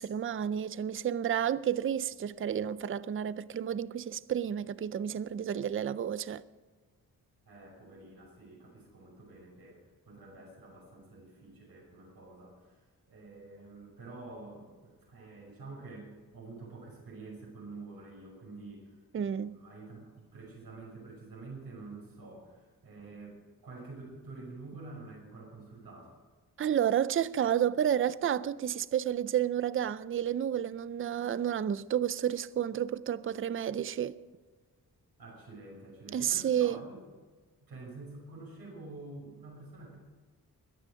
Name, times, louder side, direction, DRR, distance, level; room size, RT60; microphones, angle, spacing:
voice 1, 0.0-6.4 19.1-19.6 26.6-34.1 36.1-36.8, right 9 dB, 35° right, 0.4 m, -31 dB
voice 2, 7.4-9.8 10.1-20.0 20.3-26.1 35.2-37.0 37.6-39.9, right 3 dB, 75° right, 6.2 m, -48 dB
22.0 x 9.9 x 5.1 m
wide cardioid pair, 150°, 37 cm